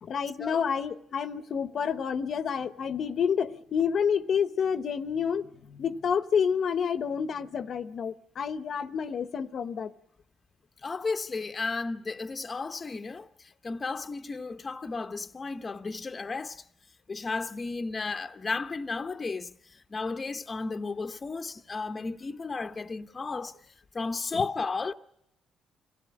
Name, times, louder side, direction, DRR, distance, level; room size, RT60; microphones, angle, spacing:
voice 1, 0.0-9.9 24.3-24.5, left 7 dB, 60° left, 0.9 m, -29 dB
voice 2, 10.8-16.6 17.1-23.5 23.9-24.9, left 4 dB, 30° left, 0.9 m, -34 dB
26.5 x 16.5 x 9.7 m
cardioid pair, 90°, 0 cm